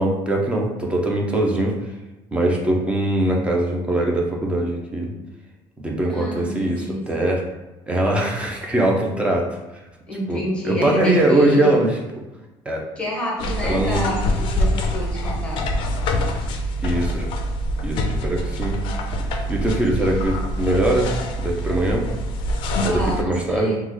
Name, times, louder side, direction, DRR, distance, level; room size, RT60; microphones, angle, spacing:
voice 1, 0.0-1.8 2.3-5.1 5.8-7.4 7.9-9.4 10.3-12.0 12.7-12.8 13.6-14.1 16.8-17.2 17.8-18.8 19.5-21.1 21.4-22.1 22.8-23.8, right 1 dB, 10° right, -1 dB, 0.5 m, -21 dB
voice 2, 6.1-7.1 10.1-11.8 13.0-15.6 22.8-23.8, left 1 dB, 10° left, -4 dB, 0.8 m, -29 dB
sound 1, 13.4-23.2, equal, 55° left, 0.4 m, -25 dB
3.0 x 2.1 x 3.6 m, 1.1 s
cardioid pair, 160°, 10 cm